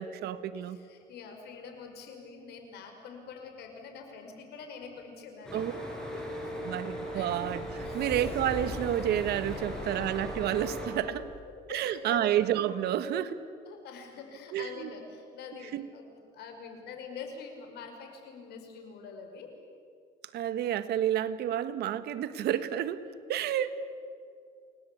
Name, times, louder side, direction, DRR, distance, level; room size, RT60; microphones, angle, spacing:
voice 1, 0.0-0.8 5.5-5.7 6.6-11.3 11.7-13.4 14.5-14.9 15.6-15.8 20.3-23.0 23.3-23.7, right 11 dB, 75° right, 12 dB, 1.5 m, -30 dB
voice 2, 0.5-5.6 6.1-6.2 6.5-6.7 7.1-8.0 9.8-9.9 10.9-12.3 13.6-16.1 16.3-19.5 23.3-23.4, left 5 dB, 75° left, 4 dB, 5.6 m, -45 dB
sound 1, 5.4-10.9, equal, 5° left, 7.1 m, -39 dB
Sliding door, 6.6-11.4, left 2 dB, 35° left, 5.4 m, -43 dB
29.5 x 19.5 x 8.6 m, 2.3 s
cardioid pair, 110°, 17 cm